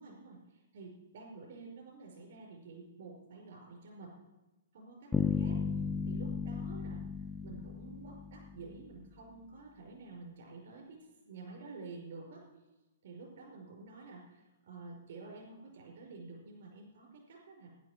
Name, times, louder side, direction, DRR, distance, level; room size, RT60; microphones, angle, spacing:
voice 1, 0.0-4.1 4.7-5.6 6.0-7.0 7.4-12.4 13.0-17.7, right 3 dB, 65° right, -1 dB, 5.0 m, -50 dB
sound 1, 5.1-8.9, left 5 dB, 10° left, 0.4 m, -35 dB
11.5 x 10.5 x 6.3 m, 1.0 s
hypercardioid pair, 145°, 0 cm